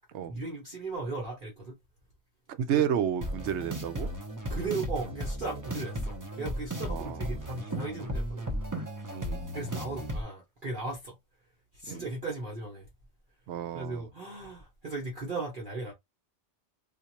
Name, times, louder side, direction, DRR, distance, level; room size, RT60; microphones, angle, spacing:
voice 1, 0.3-1.7 2.7-2.9 4.5-8.5 9.5-11.2 11.7-12.9 13.7-15.9, right 3 dB, 45° right, 1.1 m, -37 dB
voice 2, 2.5-4.1 6.9-7.3 9.1-9.5 11.9-12.0 13.5-14.1, right 9 dB, 70° right, 0.9 m, -31 dB
sound 1, 3.2-10.2, equal, 20° right, 0.6 m, -35 dB
3.7 x 2.5 x 2.8 m
omnidirectional pair, 1.3 m